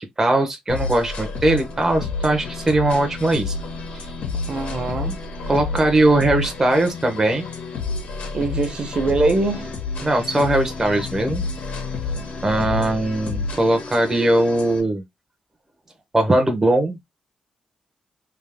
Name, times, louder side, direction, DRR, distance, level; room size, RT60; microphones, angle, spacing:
voice 1, 0.0-3.5 3.9-4.1 5.5-7.4 10.0-11.4 12.4-15.0 16.1-17.0, right 1 dB, 20° right, 0.9 m, -20 dB
sound 1, 0.7-14.8, left 4 dB, 90° left, 1.7 m, -30 dB
voice 2, 4.5-5.2 8.3-9.7 12.1-12.3, right 3 dB, 45° right, 1.1 m, -23 dB
3.5 x 3.0 x 3.4 m
wide cardioid pair, 125°, 2 cm